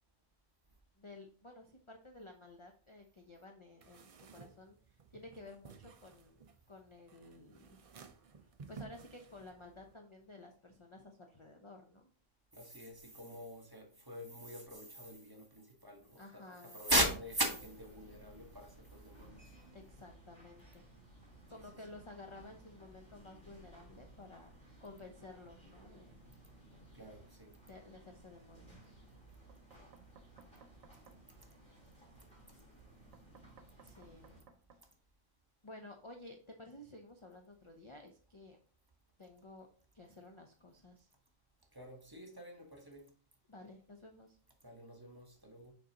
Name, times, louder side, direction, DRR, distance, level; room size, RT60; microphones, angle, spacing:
voice 1, 1.0-7.9 8.4-12.1 16.2-16.8 19.7-20.8 21.5-24.5 24.8-26.2 27.7-29.0 33.8-34.3 35.6-38.6 39.2-39.7 39.9-41.1 43.5-44.4, left 2 dB, 35° left, 0.5 m, -54 dB
sound 1, 3.8-9.9, right 5 dB, 60° right, 0.3 m, -56 dB
voice 2, 12.5-16.4 16.7-19.4 26.9-27.5 41.7-43.1 44.6-45.7, right 1 dB, 20° right, 1.1 m, -39 dB
sound 2, 17.2-34.4, right 1 dB, 5° left, 3.3 m, -59 dB
Knock, 29.5-31.2 33.1-34.8, right 5 dB, 85° right, 1.1 m, -61 dB
6.3 x 5.5 x 2.8 m
omnidirectional pair, 1.3 m